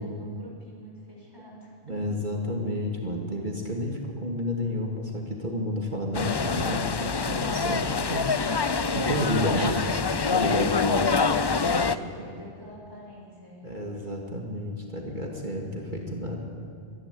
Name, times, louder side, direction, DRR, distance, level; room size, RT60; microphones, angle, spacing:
voice 1, 0.0-2.0 10.7-13.8, equal, 20° right, -3 dB, 5.7 m, -47 dB
voice 2, 1.9-12.3 13.6-16.4, equal, 45° right, 0 dB, 2.5 m, -31 dB
sound 1, 6.1-12.0, left 5 dB, 35° left, 0.4 m, -25 dB
24.5 x 11.5 x 9.9 m, 2.3 s
omnidirectional pair, 1.1 m